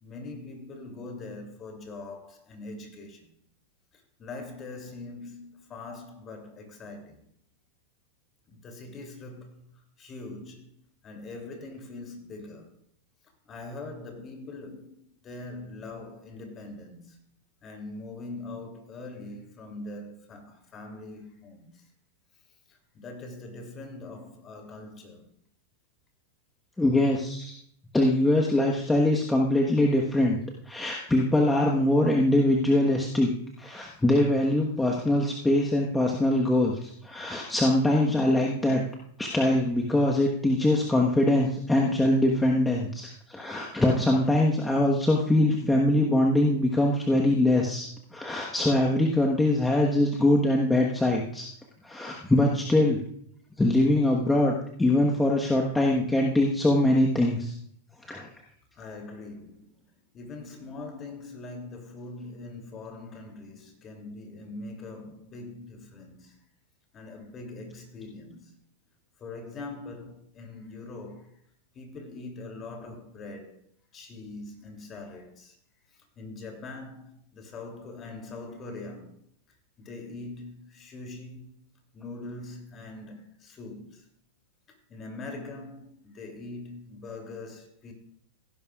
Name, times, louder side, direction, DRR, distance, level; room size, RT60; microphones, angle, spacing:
voice 1, 0.0-3.4 3.9-7.2 8.5-10.7 11.0-12.8 13.4-17.2 17.6-21.9 22.7-25.3 41.3-41.4 58.7-59.9 60.1-66.4 66.9-68.6 69.2-71.4 71.7-73.6 73.9-75.6 75.9-79.2 79.8-81.6 81.9-84.1 84.7-87.9, left 2 dB, 30° left, 2.9 m, -42 dB
voice 2, 26.8-27.5 27.9-30.4 30.7-33.3 33.6-38.8 39.2-51.5 51.8-53.0 53.6-57.5 58.1-58.3, left 1 dB, 10° left, 1.3 m, -23 dB
16.5 x 11.0 x 2.4 m
hypercardioid pair, 105°, 0 cm